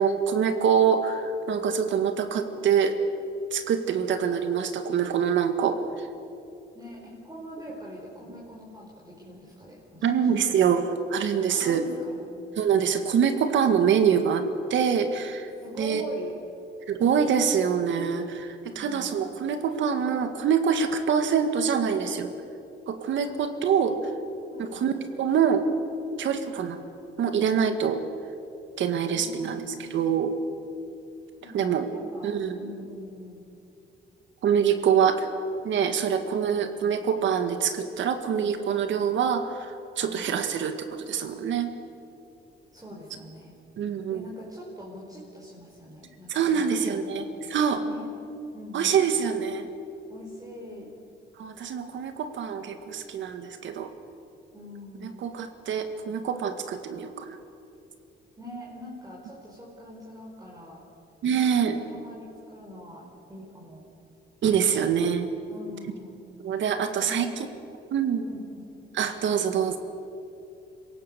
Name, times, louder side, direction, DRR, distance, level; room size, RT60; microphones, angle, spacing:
voice 1, 0.0-3.0 3.5-5.8 10.0-11.8 12.6-14.4 14.7-15.5 15.8-16.0 16.9-22.3 22.9-24.0 24.6-24.9 25.2-25.6 26.2-26.8 27.2-28.0 28.8-30.4 31.5-31.9 32.2-32.6 34.4-35.3 35.6-41.7 43.8-44.2 46.3-47.8 48.7-49.7 51.4-53.9 55.0-57.4 61.2-61.8 64.4-65.3 66.4-67.3 67.9-68.3 69.0-69.8, right 7 dB, 70° right, 8 dB, 1.9 m, -25 dB
voice 2, 6.7-10.1 11.5-12.3 15.6-16.3 18.7-19.2 23.3-23.4 24.5-24.9 29.1-30.3 31.4-32.3 32.5-33.5 40.0-40.2 42.7-43.5 44.1-47.5 47.8-48.1 48.5-49.0 50.1-50.9 54.5-55.2 58.4-60.8 61.9-63.8 65.5-66.2 67.0-67.3 68.2-68.7, equal, 20° right, -4 dB, 4.9 m, -43 dB
26.5 x 17.0 x 6.9 m, 2.7 s
cardioid pair, 90°, 20 cm